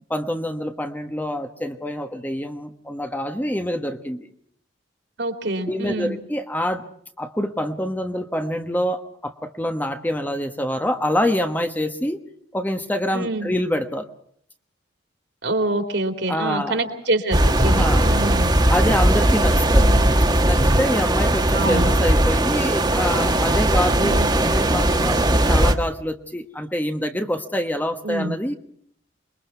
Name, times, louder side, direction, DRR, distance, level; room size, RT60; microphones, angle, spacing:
voice 1, 0.1-4.3 5.7-6.8 7.2-12.2 12.5-14.1 16.3-16.8 17.6-18.1 18.7-19.9 20.4-28.5, left 1 dB, 10° left, 6 dB, 1.2 m, -26 dB
voice 2, 5.2-6.1 13.1-13.5 15.4-18.5 19.8-20.1 21.5-21.9 23.9-24.3 28.0-28.4, right 2 dB, 65° right, 6 dB, 3.2 m, -26 dB
sound 1, 17.3-25.7, right 1 dB, 20° right, 1.5 m, -18 dB
28.0 x 22.0 x 4.6 m, 0.65 s
head